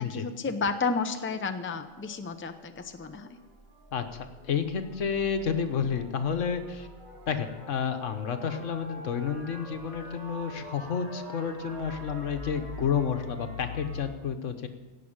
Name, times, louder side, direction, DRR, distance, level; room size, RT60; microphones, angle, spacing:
voice 1, 0.0-3.4, left 4 dB, 15° left, 8 dB, 0.5 m, -32 dB
sound 1, 1.0-14.0, left 1 dB, 35° right, 3.1 m, -45 dB
voice 2, 3.9-6.9 7.3-14.7, left 7 dB, 85° left, 8 dB, 1.4 m, -30 dB
16.5 x 6.0 x 8.8 m, 1.4 s
omnidirectional pair, 1.2 m